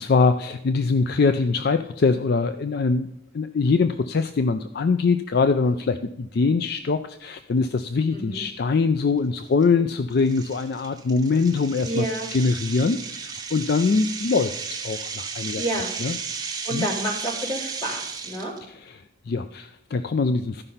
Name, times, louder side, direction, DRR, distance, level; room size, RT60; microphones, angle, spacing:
voice 1, 0.0-3.1 3.3-12.0 12.3-16.2 16.7-16.9 18.7-20.6, left 4 dB, 50° left, 10 dB, 0.4 m, -23 dB
voice 2, 8.1-8.4 11.8-12.3 15.6-15.9 16.6-18.5, right 1 dB, 25° left, -2 dB, 2.8 m, -29 dB
sound 1, 8.3-8.4 9.0-9.2 9.6-9.7 10.3-18.6, right 5 dB, 20° right, 1.1 m, -34 dB
13.0 x 5.4 x 5.6 m, 0.75 s
head